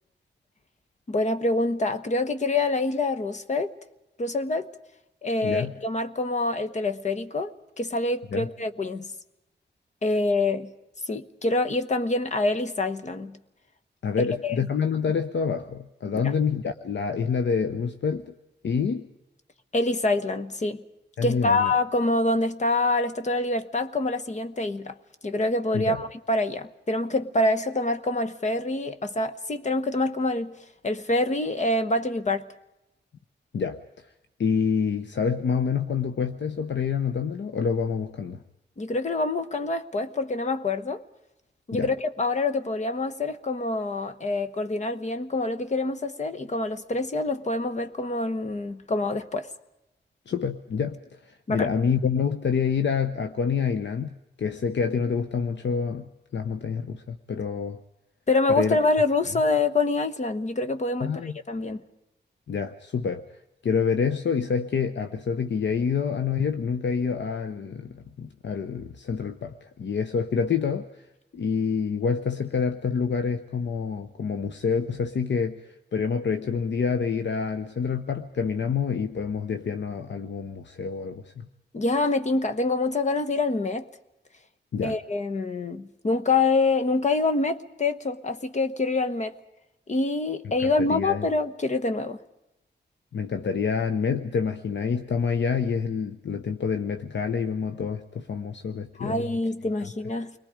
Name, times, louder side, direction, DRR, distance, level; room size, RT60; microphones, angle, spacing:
voice 1, 1.1-3.7 4.2-4.7 5.2-9.1 10.0-10.7 11.1-13.4 14.2-14.5 16.2-16.3 19.7-20.8 21.2-24.9 25.2-30.6 30.8-32.5 38.8-41.0 41.7-49.5 51.5-51.7 58.3-61.8 81.7-83.8 84.8-89.3 89.9-92.2 99.0-100.3, left 2 dB, 40° left, 1.1 m, -26 dB
voice 2, 5.4-5.7 8.3-8.5 14.0-18.3 18.6-19.1 21.2-21.7 25.7-26.0 33.5-33.8 34.4-38.4 41.7-41.9 50.3-51.0 51.3-57.8 58.5-58.8 61.0-61.4 62.5-63.2 63.6-71.0 71.3-81.5 84.7-85.0 90.6-91.3 93.1-99.4, left 6 dB, 70° left, 1.0 m, -27 dB
29.0 x 22.5 x 5.1 m
wide cardioid pair, 170°, 19 cm